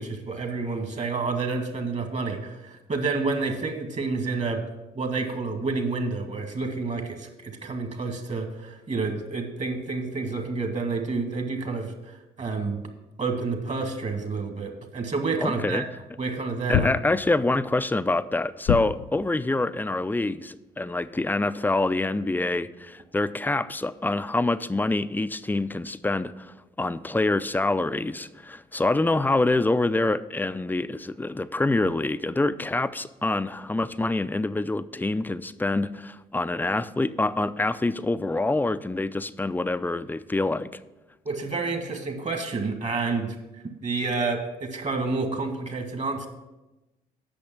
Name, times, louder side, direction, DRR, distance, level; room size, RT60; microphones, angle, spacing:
voice 1, 0.0-4.6 5.0-11.9 12.4-12.8 13.2-15.8 16.2-16.9 41.3-43.4 43.8-46.3, right 3 dB, 40° right, 5 dB, 1.8 m, -29 dB
sound 1, 15.4-15.5 16.7-17.5 18.7-19.4, left 12 dB, 75° left, 0.4 m, -27 dB
voice 2, 15.4-15.8 16.7-40.7, left 2 dB, 10° left, 14 dB, 0.4 m, -26 dB
8.6 x 6.2 x 6.0 m, 1.0 s
supercardioid pair, 60°, 18 cm